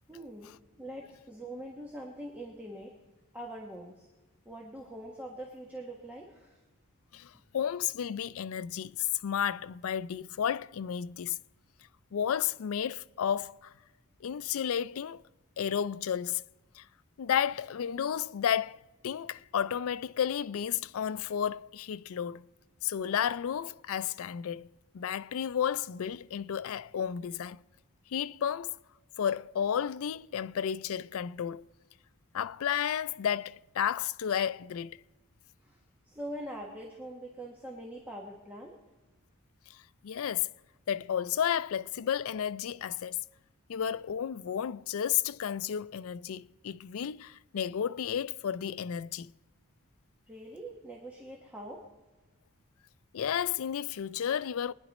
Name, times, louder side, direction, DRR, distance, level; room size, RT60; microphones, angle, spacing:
voice 1, 0.1-2.9 3.3-4.1 4.4-6.6 35.6-35.8 36.1-38.8 50.3-51.9, right 1 dB, 5° right, 1.3 m, -43 dB
voice 2, 7.1-11.4 12.1-13.7 14.2-15.2 15.6-16.4 16.7-16.9 17.2-22.5 22.8-27.6 28.1-28.8 29.2-31.7 32.3-35.0 39.7-40.5 40.9-43.2 43.7-49.3 53.1-54.7, left 9 dB, 65° left, 0.4 m, -32 dB
23.0 x 9.9 x 4.1 m
head